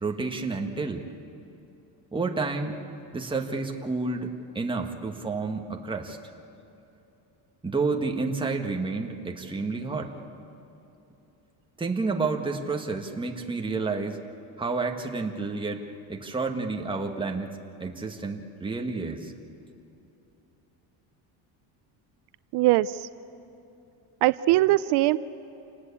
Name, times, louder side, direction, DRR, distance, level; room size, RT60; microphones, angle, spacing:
voice 1, 0.0-1.1 2.1-2.8 3.1-6.2 7.6-10.2 11.8-14.2 14.6-15.8 16.1-17.5 17.8-19.3, right 3 dB, 10° right, 3 dB, 1.6 m, -30 dB
voice 2, 22.5-23.1 24.2-25.2, right 17 dB, 80° right, 15 dB, 0.6 m, -21 dB
28.0 x 19.0 x 8.5 m, 2.8 s
cardioid pair, 140°, 40 cm